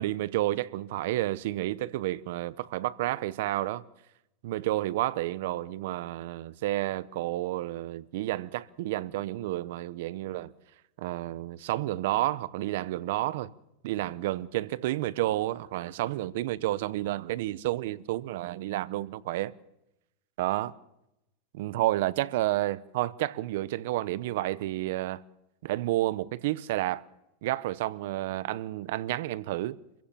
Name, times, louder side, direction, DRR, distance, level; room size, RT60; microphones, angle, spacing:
voice 1, 0.0-3.8 4.4-10.5 11.0-13.5 13.8-19.5 20.4-20.7 21.5-25.2 25.6-27.0 27.4-29.8, right 15 dB, 70° right, 0.8 m, -30 dB
26.0 x 15.5 x 7.4 m
supercardioid pair, 140°, 0 cm